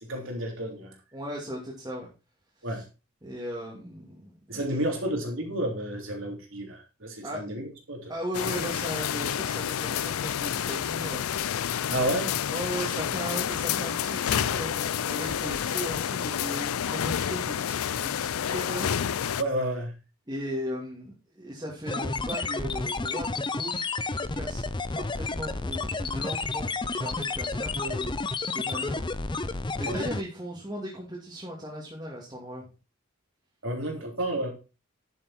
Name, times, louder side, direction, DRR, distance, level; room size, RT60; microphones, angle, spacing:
voice 1, 0.0-1.0 2.6-2.8 4.5-8.1 11.9-12.3 18.5-18.6 19.4-19.9 29.8-30.1 33.6-34.5, right 1 dB, 65° right, 2 dB, 3.5 m, -31 dB
voice 2, 1.1-2.1 2.6-2.8 3.2-4.8 7.2-7.4 8.1-11.3 12.5-18.9 20.3-24.6 24.9-29.1 29.7-32.6, equal, 20° right, -4 dB, 2.6 m, -37 dB
sound 1, 8.3-19.4, left 9 dB, 85° left, 0.4 m, -29 dB
sound 2, 21.9-30.2, left 3 dB, 20° left, 0.6 m, -31 dB
11.0 x 7.3 x 4.4 m, 0.30 s
head